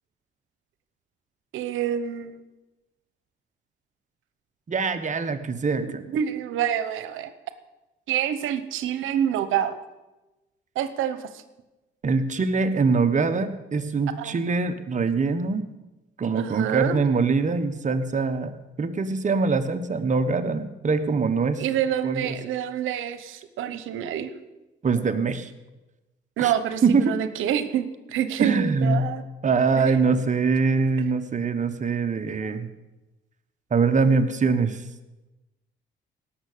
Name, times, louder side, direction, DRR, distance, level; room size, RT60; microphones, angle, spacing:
voice 1, 1.5-2.4 6.1-7.3 8.1-9.8 10.8-11.3 14.2-14.3 16.3-17.0 21.6-24.3 26.4-29.2 29.8-29.9, right 10 dB, 90° right, 11 dB, 0.9 m, -27 dB
voice 2, 4.7-6.0 12.0-15.7 16.2-18.5 18.8-21.6 22.0-22.4 24.8-25.5 26.4-26.5 26.8-27.1 28.4-29.1 29.4-32.7 33.7-34.8, right 4 dB, 40° right, 9 dB, 1.2 m, -23 dB
18.0 x 6.8 x 6.7 m, 1.1 s
cardioid pair, 90°, 20 cm